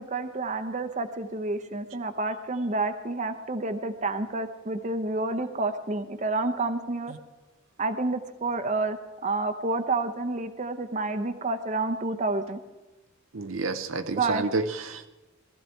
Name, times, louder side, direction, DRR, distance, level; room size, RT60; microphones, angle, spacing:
voice 1, 0.0-7.1 7.8-12.6 14.2-14.4, right 3 dB, 35° right, 8 dB, 0.8 m, -29 dB
voice 2, 13.3-15.1, right 3 dB, 80° right, 9 dB, 0.8 m, -29 dB
18.0 x 13.5 x 4.5 m, 1.1 s
head